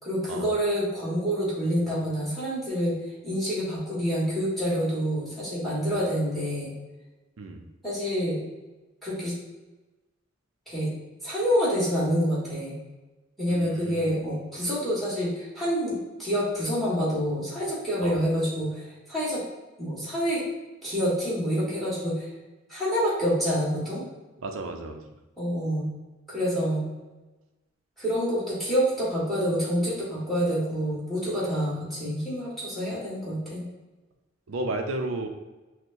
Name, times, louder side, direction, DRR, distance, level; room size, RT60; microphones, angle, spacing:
voice 1, 0.0-2.9 3.2-6.7 7.8-8.4 9.0-9.3 10.7-10.9 11.2-12.8 13.4-19.4 19.8-20.4 20.8-22.3 22.7-24.0 25.4-25.9 26.3-26.8 28.0-33.6, equal, ahead, -8 dB, 1.4 m, -27 dB
voice 2, 13.5-14.1 18.0-18.2 24.4-25.1 34.5-35.3, right 2 dB, 75° right, 5 dB, 0.5 m, -33 dB
6.0 x 2.1 x 2.6 m, 1.1 s
head